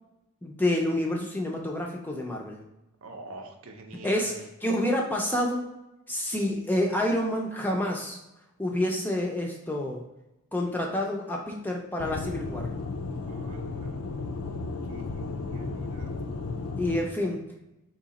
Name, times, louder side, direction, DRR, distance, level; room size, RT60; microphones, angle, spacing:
voice 1, 0.4-2.6 4.0-5.6 6.1-8.2 8.6-10.0 10.5-12.7 16.8-17.4, left 1 dB, 10° left, 0 dB, 0.4 m, -28 dB
voice 2, 3.0-4.4 13.3-14.0 14.8-16.1, right 2 dB, 70° right, 3 dB, 0.6 m, -45 dB
Aircraft / Engine, 12.0-17.0, left 3 dB, 80° left, 0.5 m, -34 dB
3.9 x 2.8 x 4.0 m, 0.95 s
head